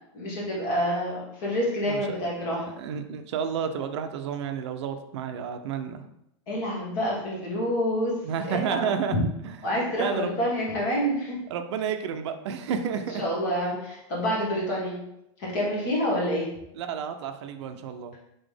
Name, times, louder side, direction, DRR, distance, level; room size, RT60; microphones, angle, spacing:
voice 1, 0.1-2.7 6.5-8.1 8.5-9.1 9.6-11.4 13.2-15.0 15.4-16.5, equal, 45° left, -4 dB, 1.7 m, -27 dB
voice 2, 1.9-2.3 2.8-6.0 8.2-9.2 9.4-9.5 10.0-10.3 11.5-13.2 16.7-18.1, right 7 dB, 65° right, 7 dB, 0.5 m, -31 dB
4.0 x 3.5 x 3.4 m, 0.81 s
supercardioid pair, 175°, 16 cm